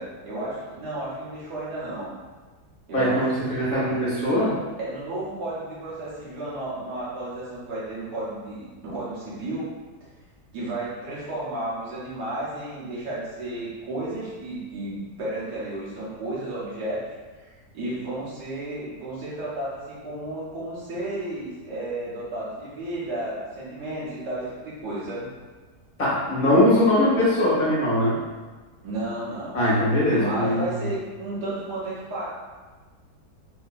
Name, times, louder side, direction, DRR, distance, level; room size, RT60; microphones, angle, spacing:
voice 1, 0.0-2.1 2.9-4.5 4.8-9.7 10.5-25.3 28.8-29.6 30.1-32.3, right 1 dB, 75° right, -9 dB, 1.7 m, -32 dB
voice 2, 2.9-4.5 26.0-28.1 29.5-30.6, left 1 dB, 30° left, -9 dB, 1.3 m, -21 dB
3.7 x 2.8 x 2.5 m, 1.3 s
omnidirectional pair, 1.8 m